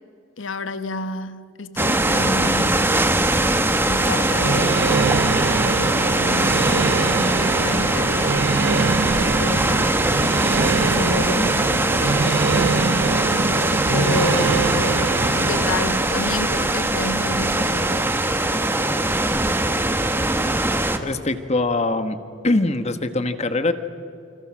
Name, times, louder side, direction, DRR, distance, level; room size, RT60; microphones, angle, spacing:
voice 1, 0.4-3.1 3.9-5.2 5.6-8.4 9.1-10.0 10.8-13.2 13.9-18.1, left 2 dB, 85° left, 1.1 m, -30 dB
sound 1, 1.8-21.0, right 2 dB, 10° right, 1.3 m, -21 dB
sound 2, 4.4-15.7, right 4 dB, 60° right, 0.6 m, -24 dB
voice 2, 21.0-22.2 22.4-23.7, left 2 dB, 35° left, 1.4 m, -22 dB
29.5 x 26.0 x 6.2 m
head